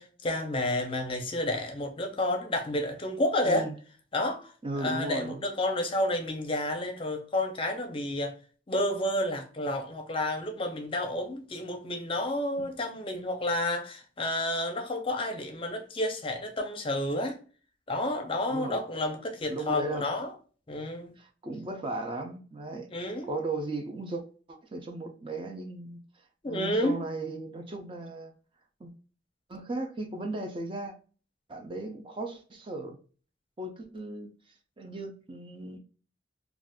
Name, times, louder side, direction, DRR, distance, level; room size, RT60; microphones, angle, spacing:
voice 1, 0.0-3.7 4.1-4.5 4.8-8.3 8.7-17.4 17.9-20.3 20.7-21.1 22.9-23.3 26.4-27.0, left 1 dB, 30° left, 0.6 m, -30 dB
voice 2, 3.4-3.7 4.6-5.4 12.6-12.7 18.5-18.8 19.5-20.1 21.2-22.9 23.2-24.2 24.5-26.0 26.5-28.3 28.8-28.9 29.5-30.9 31.5-33.0 33.6-34.3 34.8-35.8, right 2 dB, 30° right, 0.4 m, -36 dB
2.5 x 2.4 x 3.5 m
head